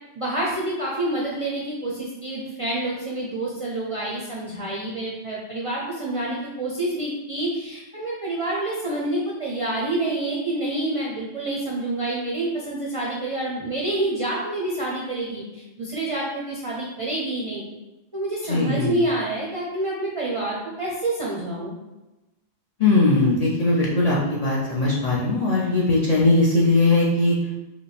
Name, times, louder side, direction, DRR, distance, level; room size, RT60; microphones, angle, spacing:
voice 1, 0.1-17.6 18.1-21.8, right 2 dB, 40° right, -5 dB, 0.5 m, -27 dB
voice 2, 18.4-19.0 22.8-27.4, left 2 dB, 45° left, -6 dB, 0.5 m, -20 dB
4.8 x 2.2 x 3.3 m, 1.0 s
omnidirectional pair, 1.2 m